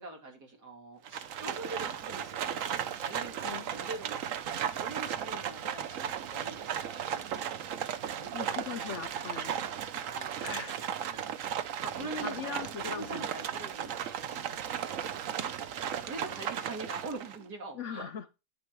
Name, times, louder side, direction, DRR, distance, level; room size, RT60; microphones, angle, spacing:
voice 1, 0.0-8.3 10.1-14.5 15.1-15.3 15.7-18.1, right 2 dB, 85° right, 3.3 m, -44 dB
Livestock farm animals working animals, 1.0-17.4, right 9 dB, 60° right, 1.0 m, -36 dB
voice 2, 3.4-3.8 8.3-9.5 10.4-10.8 11.6-13.3 17.7-18.3, left 7 dB, 60° left, 0.8 m, -40 dB
9.5 x 6.9 x 4.6 m
omnidirectional pair, 1.7 m